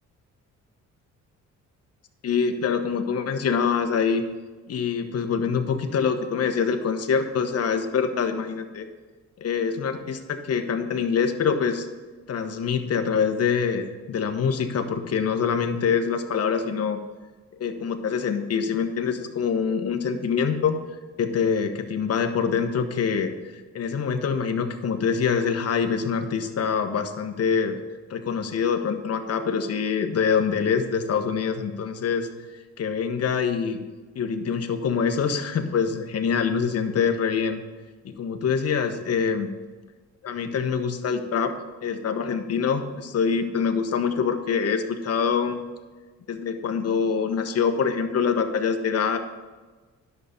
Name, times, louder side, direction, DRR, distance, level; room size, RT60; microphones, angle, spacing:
voice 1, 2.2-4.2 4.7-8.9 9.4-11.9 12.3-17.0 17.6-20.8 21.2-27.8 28.1-32.3 32.8-33.8 34.1-37.6 38.0-39.5 40.2-41.5 41.8-45.6 46.3-49.2, left 6 dB, 55° left, 6 dB, 1.2 m, -25 dB
10.5 x 7.0 x 5.2 m, 1.3 s
cardioid pair, 90°, 30 cm